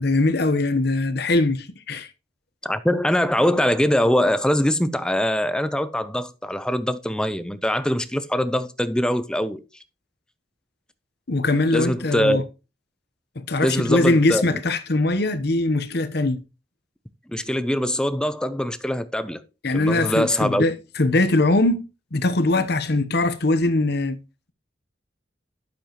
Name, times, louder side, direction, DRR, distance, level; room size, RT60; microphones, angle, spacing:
voice 1, 0.0-2.1 11.3-12.4 13.4-16.4 19.6-21.8 22.1-24.2, left 2 dB, 60° left, 1.0 m, -21 dB
voice 2, 2.6-9.6 11.7-12.4 13.6-14.6 17.3-19.4 19.7-20.6, equal, 5° left, 0.5 m, -23 dB
12.0 x 7.1 x 3.0 m
head